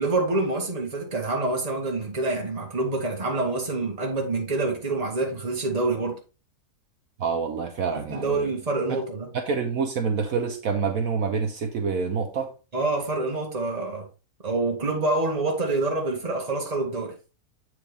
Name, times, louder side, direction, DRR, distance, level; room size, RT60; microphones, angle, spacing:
voice 1, 0.0-6.2 8.1-9.3 12.7-14.1 14.4-17.2, right 2 dB, 25° right, 1.7 m, -26 dB
voice 2, 7.2-8.5 8.9-9.0 9.3-12.5, right 5 dB, 65° right, 1.3 m, -27 dB
7.9 x 4.7 x 3.4 m
omnidirectional pair, 1.6 m